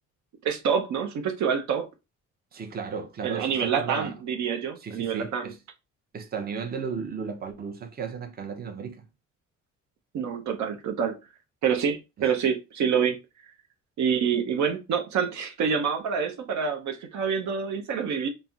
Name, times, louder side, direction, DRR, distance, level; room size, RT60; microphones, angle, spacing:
voice 1, 0.4-1.9 3.2-5.5 10.1-11.2 11.6-13.2 14.0-18.3, right 7 dB, 70° right, 0.6 m, -27 dB
voice 2, 2.5-4.1 4.8-5.6 6.1-9.0, right 6 dB, 30° right, 0.6 m, -35 dB
4.0 x 2.0 x 2.3 m
cardioid pair, 90°, 30 cm